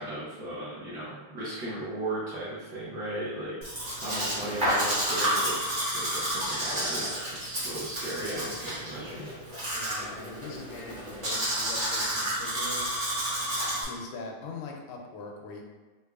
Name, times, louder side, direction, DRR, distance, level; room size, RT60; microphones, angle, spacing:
voice 1, 0.0-3.5 4.0-7.1 7.4-9.3, right 1 dB, 55° right, -9 dB, 1.5 m, -36 dB
Domestic sounds home sounds, 3.6-13.8, equal, 35° right, 0.8 m, -30 dB
voice 2, 4.0-4.8 8.1-8.5 9.7-13.1 13.9-15.6, left 3 dB, 90° left, 1 dB, 1.5 m, -42 dB
4.6 x 2.6 x 2.3 m, 1.3 s
omnidirectional pair, 2.4 m